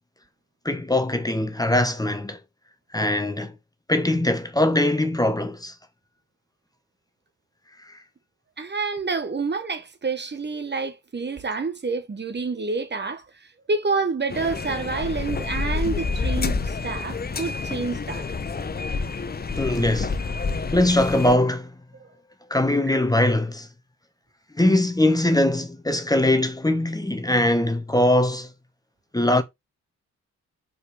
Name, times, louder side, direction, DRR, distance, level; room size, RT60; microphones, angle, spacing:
voice 1, 0.6-2.4 2.9-3.5 3.9-5.7 19.5-20.2 20.7-21.7 22.5-23.7 24.6-28.5 29.1-29.4, left 1 dB, 10° left, 1.2 m, -21 dB
voice 2, 8.6-18.2, right 4 dB, 35° right, 1.4 m, -28 dB
sound 1, 14.3-21.4, left 4 dB, 30° left, 1.0 m, -28 dB
5.3 x 4.4 x 4.8 m
supercardioid pair, 60°, 30 cm